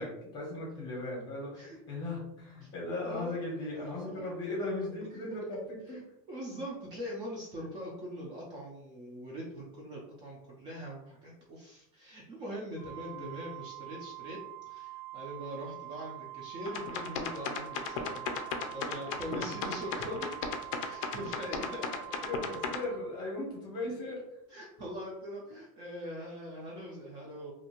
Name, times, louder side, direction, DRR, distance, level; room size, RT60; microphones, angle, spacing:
voice 1, 0.0-6.0 13.1-13.3 19.3-19.4 21.7-24.4, left 2 dB, 20° left, -2 dB, 0.8 m, -38 dB
voice 2, 3.0-4.9 5.9-6.0 6.3-14.4 14.7-18.3 18.7-20.3 20.8-21.8 24.5-27.5, equal, 25° right, -3 dB, 0.4 m, -42 dB
Organ, 12.8-23.5, right 17 dB, 90° right, 0.8 m, -45 dB
sound 1, 16.7-22.8, left 6 dB, 60° left, 0.4 m, -35 dB
2.6 x 2.4 x 2.9 m, 0.80 s
supercardioid pair, 170°, 19 cm